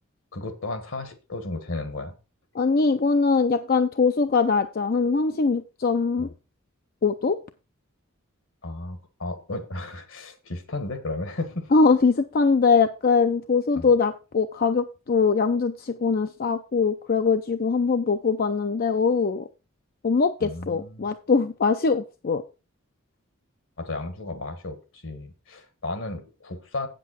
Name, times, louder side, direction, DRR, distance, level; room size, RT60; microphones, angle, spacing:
voice 1, 0.3-2.1 6.2-6.3 8.6-11.7 13.7-13.9 20.4-21.1 23.8-26.9, left 2 dB, 75° left, 9 dB, 1.6 m, -34 dB
voice 2, 2.6-6.3 7.0-7.4 11.7-19.4 20.0-22.4, left 4 dB, 45° left, 8 dB, 0.5 m, -22 dB
8.4 x 7.6 x 4.2 m, 0.31 s
head